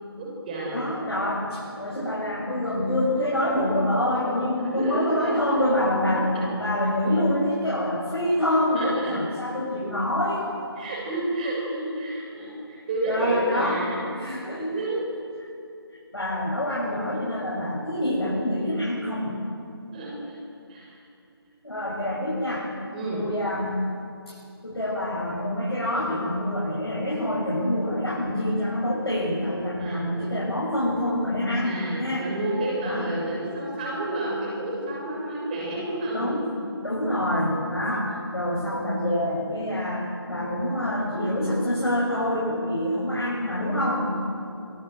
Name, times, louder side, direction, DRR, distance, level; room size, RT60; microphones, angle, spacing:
voice 1, 0.2-0.9 4.7-5.6 6.1-6.5 8.8-9.1 10.8-14.0 14.7-15.0 19.9-20.2 20.7-20.9 22.9-23.2 29.8-30.1 31.6-36.2 36.6-36.7, right 1 dB, 20° right, -3 dB, 6.9 m, -30 dB
voice 2, 0.7-10.5 13.1-13.8 14.2-14.8 16.1-19.4 21.6-22.7 23.1-23.9 24.3-24.4 24.6-32.3 32.8-33.1 36.1-36.5 36.8-44.1, left 1 dB, 75° left, -6 dB, 7.8 m, -26 dB
23.5 x 20.0 x 8.1 m, 2.5 s
figure-of-eight pair, 160°, 14 cm